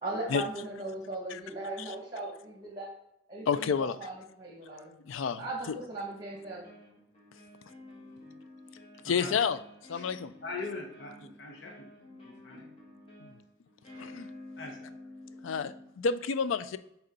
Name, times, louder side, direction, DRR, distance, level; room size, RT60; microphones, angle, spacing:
voice 1, 0.0-2.9 3.3-4.9 5.4-6.7, right 2 dB, 20° right, 0 dB, 1.6 m, -38 dB
voice 2, 3.5-4.0 5.1-5.8 9.0-9.6 9.9-10.3 13.2-13.3 14.0-14.3 15.4-16.8, left 6 dB, 80° left, 13 dB, 0.4 m, -30 dB
sound 1, 4.6-5.8 6.3-15.9, left 2 dB, 30° left, 1.5 m, -51 dB
voice 3, 9.0-9.4 9.9-10.1 10.4-11.9 12.2-12.7 14.6-14.9, left 3 dB, 60° left, 0 dB, 1.1 m, -41 dB
6.8 x 4.3 x 3.9 m, 0.78 s
head